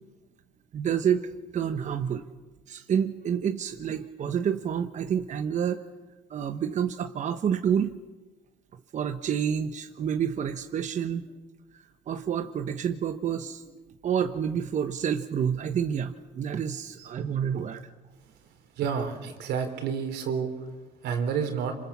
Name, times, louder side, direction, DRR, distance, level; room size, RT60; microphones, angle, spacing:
voice 1, 0.7-2.3 2.7-5.8 6.3-8.0 8.9-11.3 12.1-13.6 14.0-17.8, right 8 dB, 45° right, 8 dB, 1.1 m, -28 dB
voice 2, 18.8-20.5 21.0-21.8, right 6 dB, 85° right, 6 dB, 4.1 m, -29 dB
27.0 x 26.5 x 7.3 m, 1.2 s
cardioid pair, 110°, 17 cm